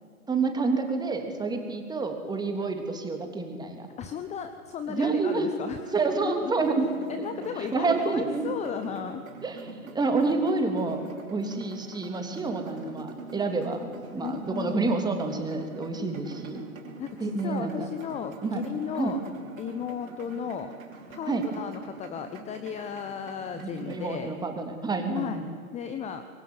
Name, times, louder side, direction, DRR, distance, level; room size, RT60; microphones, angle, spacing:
voice 1, 0.3-3.9 4.9-5.5 5.9-6.9 7.6-8.4 9.4-11.0 11.3-13.9 14.1-16.6 17.2-17.9 18.4-18.6 19.0-19.1 21.3-21.4 23.5-25.5, right 3 dB, 10° right, 5 dB, 3.1 m, -28 dB
voice 2, 4.0-5.9 6.2-6.5 7.1-9.2 14.2-14.9 17.0-19.2 19.6-20.7 21.1-24.3 25.1-25.4 25.7-26.2, left 7 dB, 15° left, 9 dB, 1.1 m, -35 dB
sound 1, 6.6-24.1, right 4 dB, 70° right, 5.5 m, -45 dB
25.5 x 22.5 x 9.7 m, 2.1 s
hypercardioid pair, 120°, 43 cm